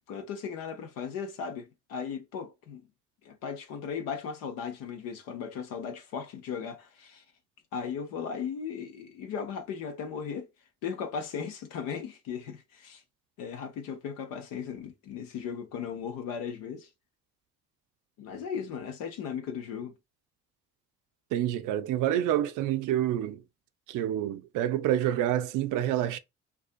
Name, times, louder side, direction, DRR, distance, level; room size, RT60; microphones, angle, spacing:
voice 1, 0.1-2.8 3.2-7.2 7.7-10.5 10.8-13.0 13.4-16.9 18.2-19.9, left 7 dB, 70° left, 0.7 m, -37 dB
voice 2, 21.3-23.4 23.9-26.2, right 11 dB, 60° right, 0.5 m, -28 dB
2.5 x 2.3 x 2.4 m
hypercardioid pair, 50°, 35 cm